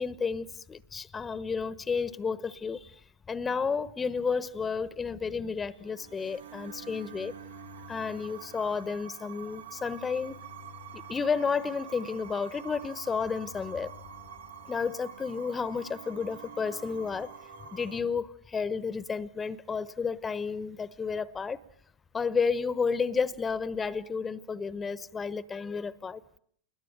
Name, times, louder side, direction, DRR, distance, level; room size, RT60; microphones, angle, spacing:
voice 1, 0.0-3.0 3.3-7.3 7.9-10.4 10.9-13.9 14.7-17.3 17.7-21.6 22.1-26.2, left 5 dB, 15° left, 1.1 m, -31 dB
sound 1, 5.7-18.0, right 6 dB, 70° right, 2.1 m, -46 dB
30.0 x 21.5 x 9.1 m
figure-of-eight pair, 90°, 0 cm